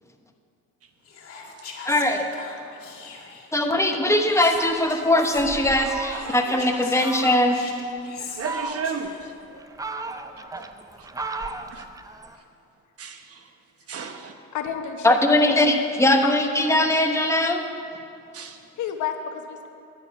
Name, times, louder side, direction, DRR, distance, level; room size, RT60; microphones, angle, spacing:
Whispering, 1.0-3.6 4.3-5.5 6.1-9.4, left 5 dB, 50° left, 1.9 m, -41 dB
voice 1, 1.9-2.3 3.5-7.6 15.0-17.6, left 1 dB, 10° left, 3 dB, 1.0 m, -20 dB
Fowl, 4.4-6.5 7.0-7.6 8.2-9.1 9.6-12.4, right 3 dB, 10° right, 0.4 m, -35 dB
voice 2, 6.1-6.6 8.4-9.8 10.1-10.7 11.0-11.9 13.0-13.5 13.9-14.3 18.3-18.6, right 5 dB, 50° right, 6 dB, 1.0 m, -36 dB
voice 3, 14.5-15.4 16.2-16.3 18.8-19.7, left 8 dB, 75° left, 5 dB, 1.1 m, -30 dB
10.5 x 9.1 x 5.4 m, 2.6 s
cardioid pair, 90°, 30 cm